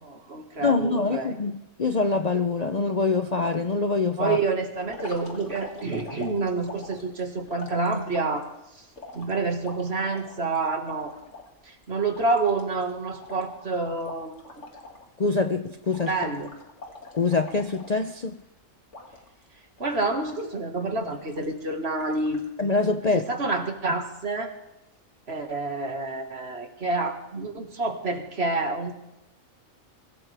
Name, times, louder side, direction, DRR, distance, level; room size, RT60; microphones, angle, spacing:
voice 1, 0.0-1.3 4.2-8.5 9.1-11.1 11.7-14.3 16.1-16.5 19.8-22.4 23.1-24.5 25.3-28.9, right 3 dB, 50° right, 2.1 m, -28 dB
voice 2, 0.6-4.4 15.2-16.1 17.2-18.4 22.6-23.3, left 4 dB, 40° left, 0.7 m, -24 dB
sound 1, 4.8-8.4 9.0-11.5 11.8-11.9 12.1-15.1 15.3-15.6 15.9-18.4 18.9-19.4 19.8-20.5 21.0-21.6 22.0-22.5, left 2 dB, 60° left, 2.8 m, -44 dB
24.0 x 16.5 x 3.5 m
omnidirectional pair, 1.4 m